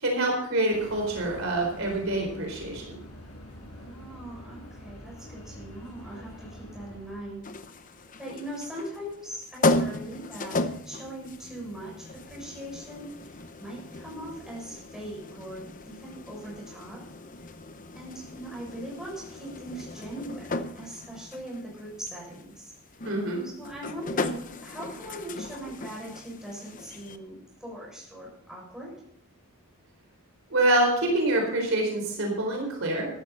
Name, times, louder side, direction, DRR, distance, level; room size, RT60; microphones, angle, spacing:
voice 1, 0.0-2.9 23.0-23.4 30.5-33.1, right 1 dB, 60° right, 1 dB, 4.4 m, -26 dB
sound 1, 0.7-7.4, left 1 dB, 85° left, 6.9 m, -45 dB
voice 2, 3.8-7.5 8.2-17.0 17.4-17.5 17.9-22.7 23.4-28.9, right 1 dB, 5° right, -4 dB, 6.9 m, -40 dB
sound 2, 7.4-27.2, left 2 dB, 35° left, 0.8 m, -35 dB
14.5 x 13.0 x 4.2 m, 0.70 s
head